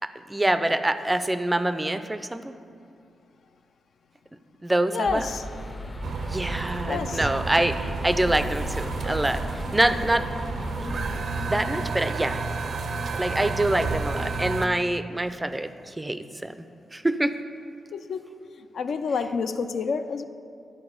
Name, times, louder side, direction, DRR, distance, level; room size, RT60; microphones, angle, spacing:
voice 1, 0.3-2.5 4.6-5.2 6.3-9.4 9.7-10.3 11.5-12.4 13.2-15.7 16.0-16.5 16.9-17.3, right 1 dB, 15° right, 10 dB, 0.4 m, -25 dB
voice 2, 4.9-5.4 6.9-7.3 17.9-18.3 18.7-20.2, left 5 dB, 70° left, 9 dB, 0.3 m, -28 dB
sound 1, 5.1-11.2, left 1 dB, 35° left, 0.6 m, -35 dB
sound 2, 6.0-14.7, right 4 dB, 70° right, 0.5 m, -31 dB
10.5 x 4.4 x 4.9 m, 2.5 s
cardioid pair, 90°, 0 cm